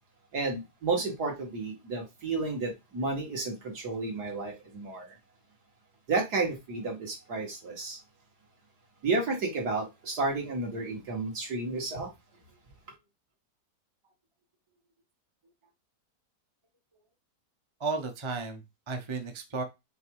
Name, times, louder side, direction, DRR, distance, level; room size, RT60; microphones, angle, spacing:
voice 1, 0.3-5.1 6.1-8.0 9.0-12.1, right 3 dB, 65° right, 2.6 m, -32 dB
voice 2, 17.8-19.6, right 4 dB, 20° right, 0.8 m, -34 dB
5.5 x 3.7 x 4.7 m
omnidirectional pair, 1.8 m